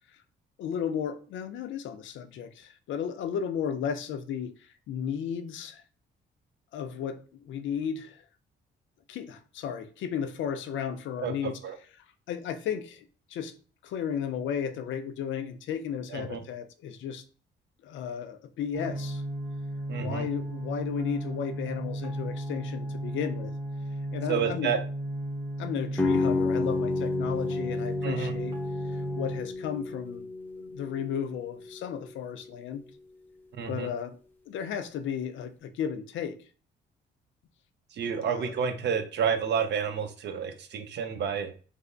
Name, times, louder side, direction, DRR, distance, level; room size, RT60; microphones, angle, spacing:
voice 1, 0.6-5.8 6.7-8.2 9.1-11.6 12.3-13.5 13.8-17.2 17.8-19.2 20.0-23.5 24.1-24.8 25.6-28.6 28.9-30.3 30.6-32.8 33.7-34.2 34.5-36.4 38.2-38.6, left 8 dB, 75° left, 0.5 m, -34 dB
sound 1, 18.7-29.4, right 1 dB, 20° right, 1.1 m, -35 dB
voice 2, 19.9-20.3 24.3-24.8 28.0-28.3 33.6-33.9 37.9-41.5, right 7 dB, 60° right, 0.6 m, -30 dB
sound 2, 26.0-31.7, left 3 dB, 10° left, 0.6 m, -31 dB
3.4 x 2.0 x 3.8 m
cardioid pair, 90°, 20 cm